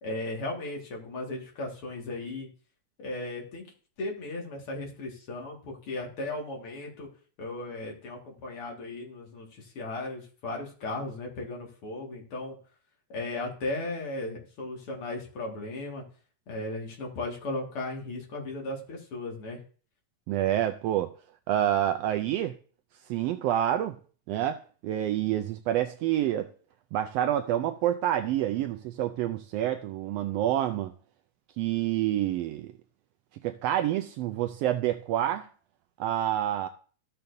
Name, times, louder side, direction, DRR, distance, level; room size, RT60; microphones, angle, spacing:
voice 1, 0.0-2.5 3.0-3.6 4.0-7.1 7.4-12.6 13.1-16.0 16.5-19.6, left 2 dB, 50° left, 2.6 m, -36 dB
voice 2, 20.3-21.1 21.5-22.5 23.1-24.0 24.3-26.5 26.9-30.9 31.6-32.7 33.4-35.5 36.0-36.7, right 12 dB, 85° right, 1.4 m, -28 dB
13.5 x 6.7 x 2.6 m
omnidirectional pair, 3.3 m